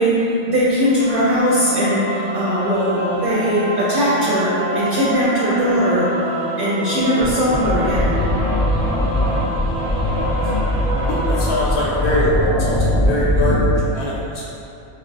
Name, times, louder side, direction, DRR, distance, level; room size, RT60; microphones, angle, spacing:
voice 1, 0.0-6.1 6.6-8.3, equal, 60° right, -8 dB, 0.6 m, -19 dB
sound 1, 0.8-11.8, right 1 dB, 30° right, 0.3 m, -28 dB
sound 2, 7.2-13.8, left 1 dB, 25° left, 0.8 m, -20 dB
voice 2, 11.1-12.3 12.6-12.8 13.1-13.6 13.9-14.1, left 2 dB, 50° left, -7 dB, 0.8 m, -22 dB
4.0 x 2.1 x 2.5 m, 2.7 s
omnidirectional pair, 1.3 m